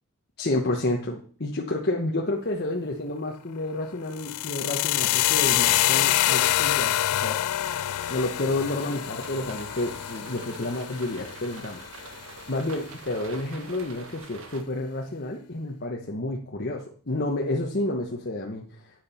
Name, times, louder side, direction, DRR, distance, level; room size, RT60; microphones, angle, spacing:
voice 1, 0.4-7.4 8.1-12.2 12.5-19.0, left 2 dB, 45° left, 0 dB, 1.2 m, -30 dB
sound 1, 4.1-12.2, left 14 dB, 80° left, 0.4 m, -26 dB
sound 2, 7.5-14.6, right 4 dB, 60° right, 1.4 m, -45 dB
9.8 x 6.9 x 5.7 m, 0.43 s
head